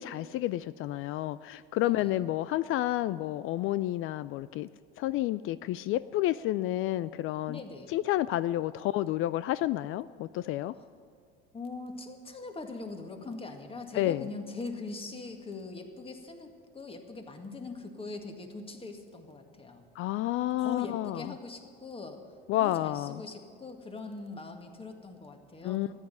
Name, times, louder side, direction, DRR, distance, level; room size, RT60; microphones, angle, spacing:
voice 1, 0.0-4.7 5.0-7.6 7.9-10.7 13.9-14.3 20.0-21.2 22.5-23.2 25.6-25.9, left 14 dB, 45° left, 17 dB, 0.4 m, -30 dB
voice 2, 1.8-2.1 7.5-7.9 10.7-10.9 11.5-19.8 20.6-22.2 22.5-25.9, left 3 dB, 20° left, 5 dB, 2.0 m, -41 dB
14.0 x 9.9 x 9.3 m, 2.1 s
hypercardioid pair, 80°, 29 cm